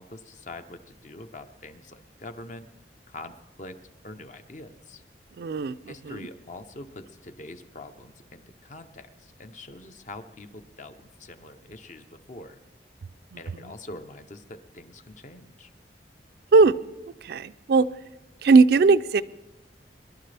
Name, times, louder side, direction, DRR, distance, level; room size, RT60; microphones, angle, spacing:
voice 1, 0.0-2.7 3.1-5.0 5.9-12.6 13.4-15.7, left 2 dB, 45° left, 9 dB, 0.8 m, -44 dB
voice 2, 5.4-6.2 16.5-16.8 17.2-17.9 18.4-19.2, right 4 dB, 60° right, 14 dB, 0.4 m, -19 dB
22.5 x 11.5 x 3.4 m, 1.0 s
head